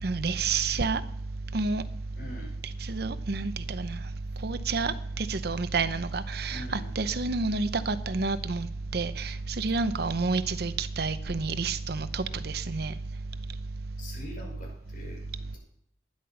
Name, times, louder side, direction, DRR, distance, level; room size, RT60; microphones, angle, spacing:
voice 1, 0.0-1.0 1.5-1.8 2.9-4.0 4.4-8.7 8.9-12.9, right 4 dB, 65° right, 12 dB, 0.7 m, -29 dB
voice 2, 2.2-2.5 6.5-7.1 14.0-15.6, left 1 dB, 50° left, 0 dB, 5.9 m, -44 dB
12.5 x 10.5 x 5.7 m, 0.72 s
head